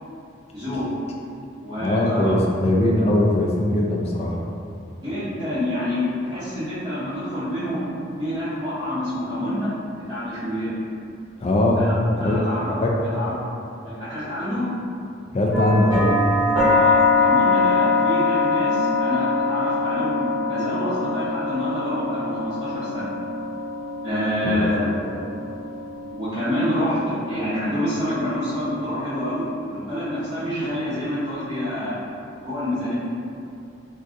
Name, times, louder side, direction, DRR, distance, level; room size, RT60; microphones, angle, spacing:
voice 1, 0.5-0.8 1.6-2.4 5.0-10.7 11.8-11.9 12.2-12.7 13.1-13.3 13.8-14.6 16.7-23.1 24.0-24.9 26.1-31.9 32.4-32.9, left 1 dB, 20° right, -16 dB, 0.8 m, -27 dB
voice 2, 1.8-4.4 11.4-11.8 12.2-12.4 12.8-12.9 15.3-16.2 24.4-25.1, left 1 dB, 35° left, -2 dB, 0.3 m, -21 dB
sound 1, 15.5-29.4, left 3 dB, 70° right, 1.2 m, -24 dB
3.5 x 2.6 x 2.5 m, 2.6 s
head